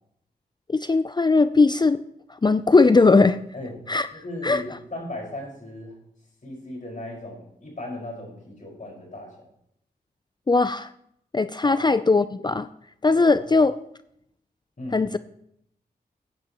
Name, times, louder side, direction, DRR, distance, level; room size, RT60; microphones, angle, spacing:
voice 1, 0.7-2.0 2.3-3.4 3.9-4.1 4.4-4.6 10.5-10.9 11.3-12.7 13.0-13.7 14.9-15.2, left 3 dB, 25° left, 13 dB, 0.4 m, -19 dB
voice 2, 4.1-6.0 6.4-9.3 11.6-11.9 13.3-13.5 14.8-15.0, left 1 dB, 50° left, -1 dB, 5.3 m, -37 dB
15.0 x 9.2 x 3.0 m, 0.74 s
cardioid pair, 45°, 17 cm